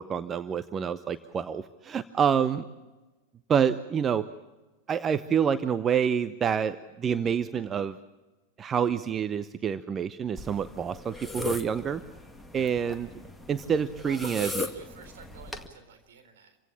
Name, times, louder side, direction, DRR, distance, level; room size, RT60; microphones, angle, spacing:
voice 1, 0.0-2.7 3.5-4.3 4.9-8.0 8.6-12.0 12.5-13.1 13.5-14.5, right 7 dB, 25° right, 13 dB, 0.8 m, -27 dB
sound 1, 10.4-15.7, left 2 dB, 5° left, 2.0 m, -38 dB
voice 2, 14.0-16.6, right 7 dB, 60° right, 7 dB, 3.9 m, -48 dB
27.5 x 16.5 x 8.8 m, 1.2 s
figure-of-eight pair, 90°, 0 cm